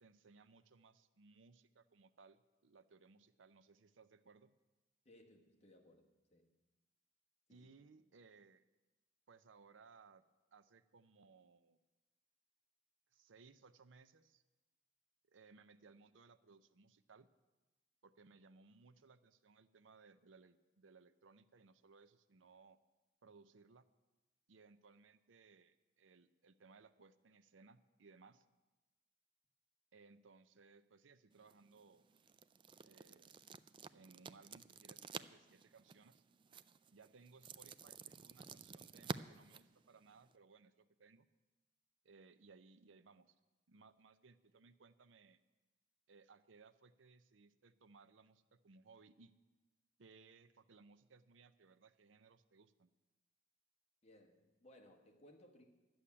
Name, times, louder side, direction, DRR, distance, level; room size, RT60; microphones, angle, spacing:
voice 1, 0.0-4.6 7.5-8.6 9.3-10.2 10.5-11.8 13.1-14.4 15.3-17.3 18.0-22.8 23.2-23.9 24.5-28.5 29.9-32.0 32.8-33.3 33.9-36.2 36.9-41.3 42.0-43.4 43.7-45.4 46.1-49.4 50.0-52.9, right 4 dB, 85° right, 0.6 m, -64 dB
voice 2, 5.0-6.5 7.5-7.7 54.0-55.6, left 1 dB, 35° left, 1.5 m, -64 dB
sound 1, 31.3-40.4, right 5 dB, 25° right, 0.3 m, -52 dB
11.5 x 7.1 x 9.7 m
head